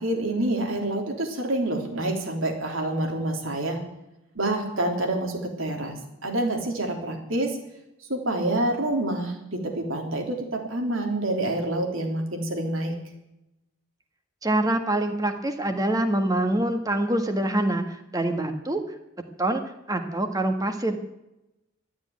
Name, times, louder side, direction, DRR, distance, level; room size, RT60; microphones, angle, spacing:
voice 1, 0.0-3.8 4.3-6.0 6.2-7.5 8.1-12.9, right 1 dB, 80° right, 2 dB, 3.3 m, -27 dB
voice 2, 14.4-18.8 19.4-19.6 19.9-21.0, right 1 dB, 15° right, 6 dB, 1.5 m, -25 dB
13.0 x 9.5 x 9.4 m, 0.89 s
head